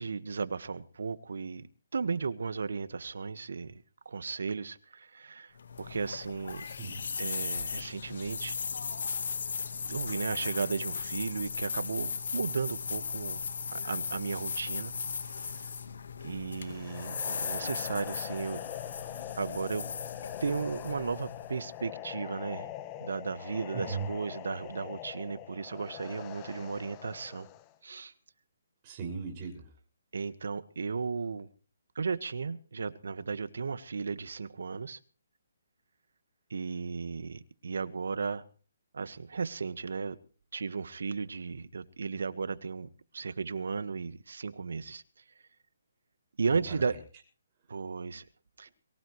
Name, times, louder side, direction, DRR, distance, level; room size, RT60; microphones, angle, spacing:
voice 1, 0.0-5.5 5.8-6.7 7.2-8.6 9.9-13.4 13.7-14.9 15.4-15.7 16.2-18.6 19.4-19.9 20.4-22.7 23.0-27.5 27.8-28.1 30.1-31.5 31.9-35.0 36.5-38.4 38.9-40.2 40.5-45.0 46.4-46.9 47.7-48.2 48.6-48.7, right 5 dB, 75° right, 14 dB, 1.5 m, -35 dB
sound 1, 5.6-21.7, left 5 dB, 70° left, 1.4 m, -37 dB
voice 2, 6.6-7.0 23.7-24.1 28.8-29.7 46.5-47.0, right 5 dB, 30° right, 2 dB, 6.0 m, -38 dB
sound 2, 16.6-27.7, left 13 dB, 25° left, 1.0 m, -43 dB
23.5 x 15.5 x 3.2 m, 0.39 s
hypercardioid pair, 155°, 0 cm